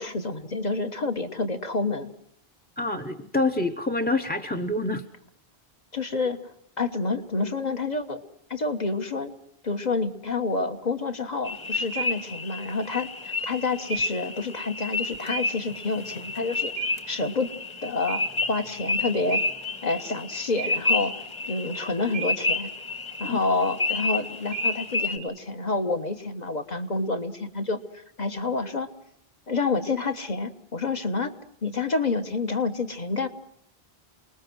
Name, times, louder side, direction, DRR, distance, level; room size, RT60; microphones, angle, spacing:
voice 1, 0.0-2.1 5.9-6.4 6.8-8.2 8.5-9.3 9.6-16.7 17.1-17.5 17.8-18.2 18.5-19.4 19.8-21.1 21.5-22.7 23.2-28.9 29.5-31.3 31.6-33.3, left 3 dB, 40° left, 6 dB, 1.5 m, -28 dB
voice 2, 2.8-5.0 23.2-23.4, left 2 dB, 10° left, 10 dB, 0.8 m, -26 dB
sound 1, 11.4-25.2, left 2 dB, 25° left, 1.8 m, -30 dB
28.5 x 20.0 x 6.3 m, 0.69 s
omnidirectional pair, 1.1 m